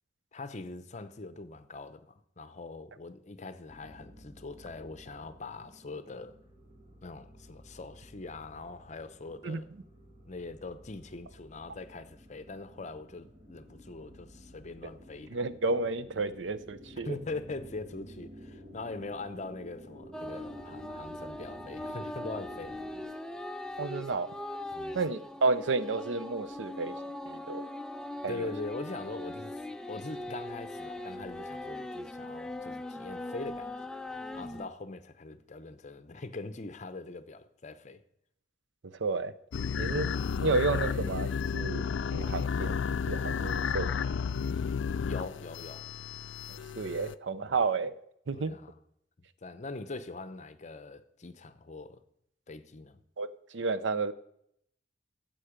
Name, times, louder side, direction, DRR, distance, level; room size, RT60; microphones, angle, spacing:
voice 1, 0.3-6.3 7.0-9.7 10.2-15.5 17.0-22.8 24.7-25.0 28.3-29.6 29.9-33.7 34.3-38.0 45.1-45.9 47.4-47.5 48.3-48.7 49.4-52.0 52.5-53.0, left 3 dB, 40° left, 0.7 m, -42 dB
sound 1, 3.7-23.0, equal, 50° right, 2.4 m, -52 dB
voice 2, 15.3-17.2 23.8-24.3 24.9-27.0 27.3-27.6 28.2-28.5 39.0-39.3 39.8-40.1 40.4-41.8 42.1-42.8 43.1-44.1 46.5-47.9 48.3-48.6 53.2-54.1, right 3 dB, 80° right, 0.6 m, -31 dB
sound 2, 20.1-34.7, left 1 dB, 5° left, 0.4 m, -40 dB
sound 3, 39.5-47.1, left 6 dB, 80° left, 0.4 m, -32 dB
13.0 x 7.7 x 5.1 m
head